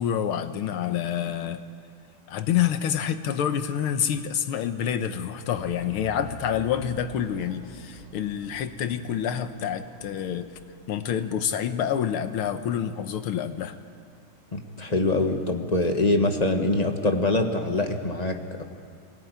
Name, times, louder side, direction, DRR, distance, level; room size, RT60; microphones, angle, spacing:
voice 1, 0.0-1.6 2.3-10.5 10.9-13.8, left 9 dB, 90° left, 9 dB, 1.9 m, -27 dB
sound 1, 5.5-12.5, right 3 dB, 70° right, 3.9 m, -48 dB
voice 2, 14.5-18.6, left 2 dB, 20° left, 4 dB, 1.3 m, -24 dB
23.0 x 18.0 x 9.5 m, 2.3 s
omnidirectional pair, 2.3 m